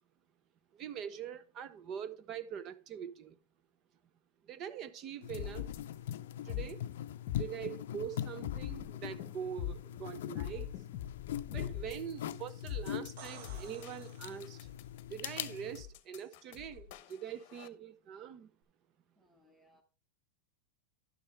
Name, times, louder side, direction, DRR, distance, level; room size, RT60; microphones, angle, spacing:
voice 1, 0.7-3.4 4.5-5.7 6.5-6.9 7.4-10.7 11.5-14.6 15.1-18.5, right 9 dB, 35° right, 0.7 m, -43 dB
sound 1, 5.2-15.8, left 11 dB, 80° left, 0.4 m, -42 dB
sound 2, 5.3-17.7, left 11 dB, 50° left, 0.9 m, -43 dB
sound 3, 13.2-14.9 18.6-18.7, right 6 dB, 60° right, 1.2 m, -54 dB
voice 2, 19.1-19.8, left 1 dB, 5° right, 1.4 m, -67 dB
11.5 x 6.7 x 3.4 m
supercardioid pair, 150°, 0 cm